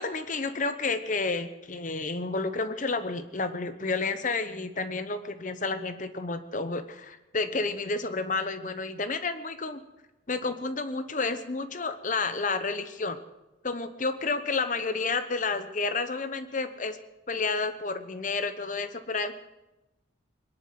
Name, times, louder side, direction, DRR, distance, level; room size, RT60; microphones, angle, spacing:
voice 1, 0.0-9.8 10.3-13.2 13.6-17.0 17.3-19.3, left 3 dB, 40° left, 10 dB, 1.0 m, -30 dB
21.5 x 11.0 x 6.0 m, 0.99 s
head